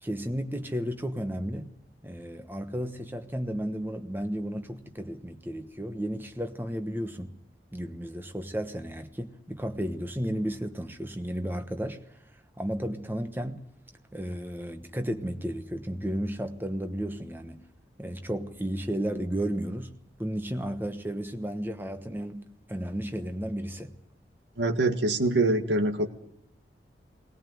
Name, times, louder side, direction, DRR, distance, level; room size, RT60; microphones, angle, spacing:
voice 1, 0.0-1.8 2.0-7.3 7.7-12.0 12.6-13.6 14.1-17.6 18.0-19.9 20.2-23.9, equal, 10° right, 1.2 m, -33 dB
voice 2, 24.6-26.1, right 2 dB, 80° right, 1.9 m, -24 dB
19.0 x 18.5 x 9.3 m
head